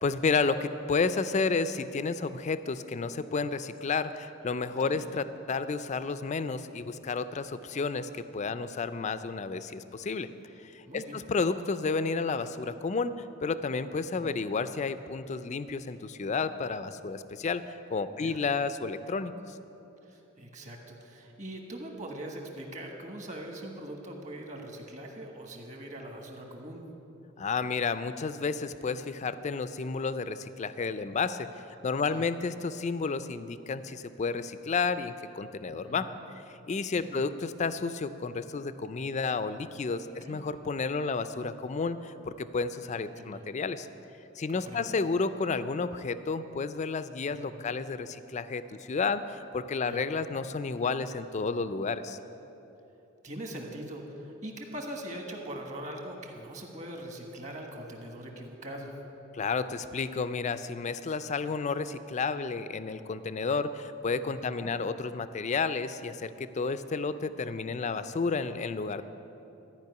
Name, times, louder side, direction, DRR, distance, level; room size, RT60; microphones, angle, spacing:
voice 1, 0.0-10.3 10.6-17.6 17.9-19.3 27.4-31.5 31.8-36.1 36.7-43.9 44.4-52.2 59.3-69.0, left 4 dB, 35° left, 12 dB, 0.4 m, -31 dB
voice 2, 10.9-11.2 14.1-14.5 18.1-18.4 20.0-26.9 32.1-32.3 35.7-36.2 37.0-37.3 40.2-40.4 43.1-43.4 44.5-44.9 47.5-47.7 49.8-50.1 53.2-58.9 64.4-64.7, right 1 dB, 35° right, 2 dB, 1.4 m, -42 dB
13.5 x 5.4 x 9.3 m, 3.0 s
head